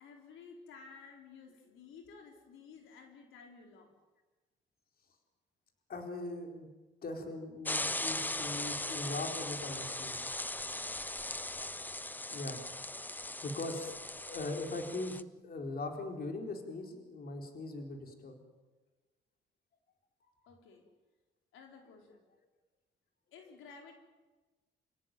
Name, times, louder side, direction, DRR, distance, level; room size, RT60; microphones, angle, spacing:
voice 1, 0.0-3.9 20.5-20.8 21.5-22.2 23.3-23.9, left 5 dB, 85° left, 2 dB, 4.2 m, -54 dB
voice 2, 5.9-6.7 7.0-10.8 12.3-12.6 13.4-18.4 20.2-20.3, left 2 dB, 50° left, 3 dB, 4.3 m, -41 dB
sound 1, 7.6-15.2, left 2 dB, 10° left, 0.8 m, -39 dB
29.0 x 17.5 x 9.2 m, 1.2 s
cardioid pair, 90°, 20 cm